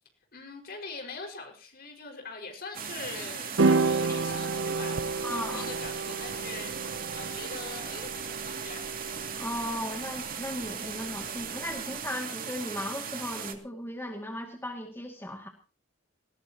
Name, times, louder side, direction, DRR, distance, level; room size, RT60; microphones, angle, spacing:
voice 1, 0.3-8.8, left 4 dB, 55° left, 3 dB, 5.4 m, -42 dB
sound 1, 2.7-13.5, right 7 dB, 50° right, 2.5 m, -38 dB
sound 2, 3.6-12.0, right 3 dB, 80° right, 0.8 m, -31 dB
voice 2, 5.2-5.7 9.4-15.5, left 1 dB, 15° left, 2 dB, 2.3 m, -36 dB
20.0 x 18.0 x 3.0 m, 0.35 s
head